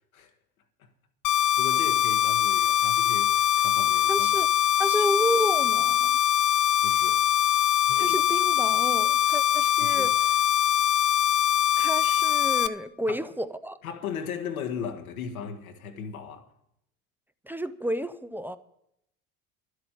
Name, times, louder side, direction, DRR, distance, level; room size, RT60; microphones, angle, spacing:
sound 1, 1.2-12.7, left 11 dB, 45° left, 0.7 m, -23 dB
voice 1, 1.5-4.3 6.8-7.2 7.9-8.2 9.8-10.1 13.1-13.2 13.8-16.5, left 7 dB, 80° left, 1.5 m, -37 dB
voice 2, 4.1-4.5 4.8-6.1 8.0-10.3 11.8-13.8 17.4-18.6, equal, 5° right, 0.6 m, -31 dB
12.0 x 8.0 x 9.0 m
figure-of-eight pair, 60°, 42 cm